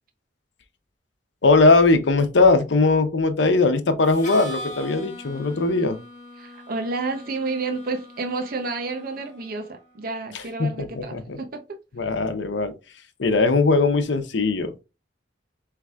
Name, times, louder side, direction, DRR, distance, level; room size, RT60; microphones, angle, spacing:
voice 1, 1.4-6.0 10.6-11.4 12.0-12.7 13.2-14.7, left 3 dB, 80° left, 0.8 m, -19 dB
Harmonica, 4.0-9.8, equal, 40° left, 1.2 m, -41 dB
voice 2, 6.4-11.6, right 3 dB, 50° right, 0.7 m, -30 dB
4.7 x 3.2 x 2.4 m
head